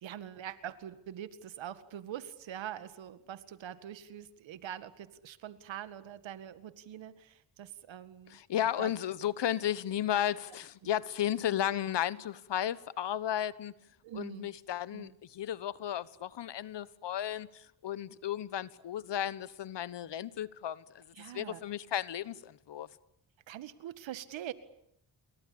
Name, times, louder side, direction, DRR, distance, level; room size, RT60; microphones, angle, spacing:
voice 1, 0.0-8.4 8.8-8.9 10.8-10.9 14.0-14.5 14.9-15.2 21.1-21.6 23.5-24.5, right 10 dB, 85° right, 2.0 m, -44 dB
voice 2, 8.3-13.7 14.1-21.0 21.3-22.9, left 11 dB, 70° left, 1.4 m, -34 dB
29.0 x 23.0 x 8.7 m
cardioid pair, 75°, 44 cm